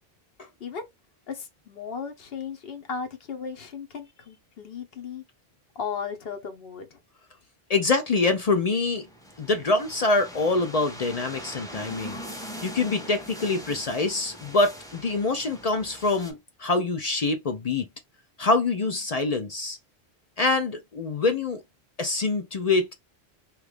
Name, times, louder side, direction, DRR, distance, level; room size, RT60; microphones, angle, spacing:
voice 1, 1.3-5.2 5.8-7.0, left 6 dB, 65° left, 1.0 m, -36 dB
voice 2, 7.7-9.1 9.4-17.9 18.4-19.8 20.4-21.6 22.0-22.9, left 3 dB, 50° left, 0.5 m, -25 dB
sound 1, 8.5-16.3, equal, 5° left, 0.6 m, -42 dB
2.9 x 2.4 x 3.2 m
omnidirectional pair, 1.1 m